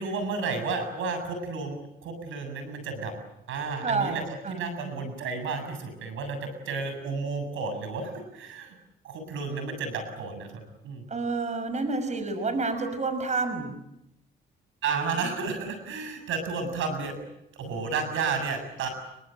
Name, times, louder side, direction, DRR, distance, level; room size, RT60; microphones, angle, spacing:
voice 1, 0.0-3.1 3.5-8.7 9.0-11.1 14.8-17.2 17.5-18.9, right 4 dB, 80° right, 8 dB, 7.6 m, -32 dB
voice 2, 3.8-4.2 4.4-4.6 11.1-13.7, right 3 dB, 35° right, 9 dB, 6.1 m, -29 dB
30.0 x 24.0 x 7.8 m, 0.84 s
cardioid pair, 90°, 20 cm